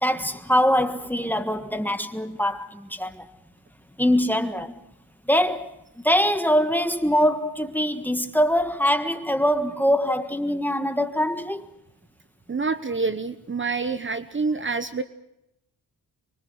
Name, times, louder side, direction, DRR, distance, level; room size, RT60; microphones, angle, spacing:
voice 1, 0.0-3.3 4.0-4.8 5.3-5.8 6.0-11.6, equal, 5° left, 1.5 m, -23 dB
voice 2, 12.5-15.0, right 4 dB, 30° right, 1.1 m, -27 dB
26.0 x 23.5 x 6.3 m
cardioid pair, 110°, 39 cm